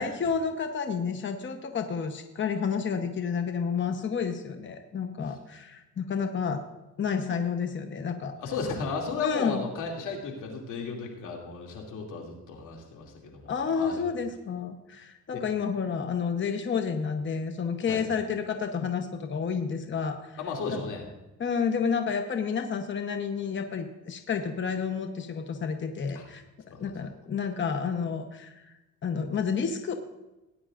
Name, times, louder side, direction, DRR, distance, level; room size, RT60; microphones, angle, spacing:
voice 1, 0.0-6.6 7.0-8.3 9.2-9.6 13.5-20.4 20.7-20.9 21.4-26.4 26.8-28.7 29.0-29.9, left 6 dB, 40° left, 6 dB, 1.0 m, -30 dB
voice 2, 8.4-14.1 15.3-15.4 17.9-18.1 20.4-21.0 26.1-26.3 26.7-26.9, left 4 dB, 85° left, 0 dB, 2.6 m, -35 dB
18.0 x 9.8 x 2.5 m, 1.0 s
cardioid pair, 90°, 30 cm